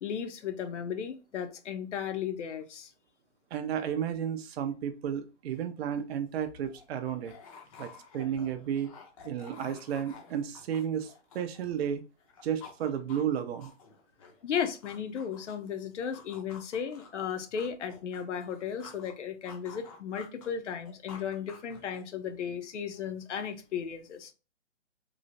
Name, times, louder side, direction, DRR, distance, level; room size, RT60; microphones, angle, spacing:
voice 1, 0.0-2.9 7.7-7.8 14.4-24.3, left 7 dB, 80° left, 0.7 m, -35 dB
voice 2, 3.5-7.3 7.8-8.9 9.2-12.0 12.4-13.7, right 9 dB, 60° right, 0.5 m, -33 dB
sound 1, 6.1-6.2 6.4-11.9 12.2-15.7 16.1-19.1 19.5-22.2, left 5 dB, 30° left, 0.5 m, -51 dB
3.0 x 2.0 x 2.5 m
hypercardioid pair, 150°, 36 cm